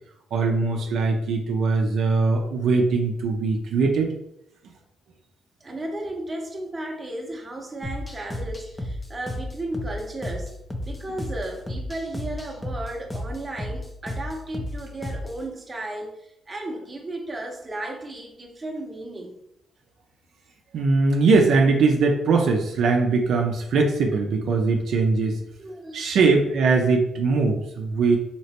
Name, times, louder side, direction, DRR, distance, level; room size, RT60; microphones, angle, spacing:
voice 1, 0.3-4.1 20.7-25.4 25.9-28.2, right 4 dB, 70° right, 2 dB, 0.4 m, -21 dB
voice 2, 5.6-10.5 10.8-19.4 25.6-26.2, right 1 dB, 25° right, 1 dB, 0.7 m, -34 dB
sound 1, 7.8-15.4, left 1 dB, 20° left, 0.5 m, -33 dB
3.1 x 2.9 x 2.9 m, 0.77 s
cardioid pair, 90°, 0 cm